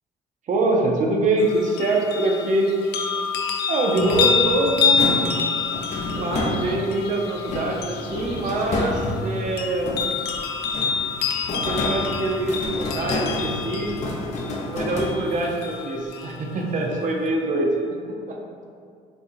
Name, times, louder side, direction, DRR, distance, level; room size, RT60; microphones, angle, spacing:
voice 1, 0.5-2.7 3.7-5.3 6.1-10.0 11.5-13.9 14.7-17.7 18.3-18.4, right 2 dB, 50° right, 0 dB, 0.7 m, -24 dB
sound 1, 1.4-16.4 16.9-17.0, left 6 dB, 75° left, 0.5 m, -27 dB
sound 2, 4.0-7.0 7.5-10.3 10.6-15.6, left 2 dB, 45° left, 0.7 m, -30 dB
6.1 x 3.0 x 2.6 m, 2.2 s
cardioid pair, 110°, 17 cm